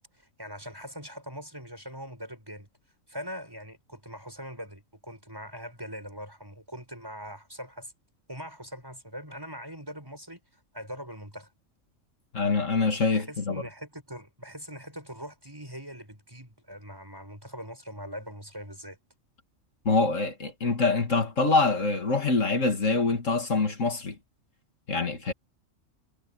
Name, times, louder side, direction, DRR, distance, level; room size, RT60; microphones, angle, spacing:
voice 1, 0.2-2.7 3.1-7.9 8.3-10.4 10.7-11.5 13.1-19.0, equal, 15° right, 7.7 m, -42 dB
voice 2, 12.3-13.6 19.8-24.2 24.9-25.3, left 3 dB, 70° left, 2.6 m, -25 dB
omnidirectional pair, 1.4 m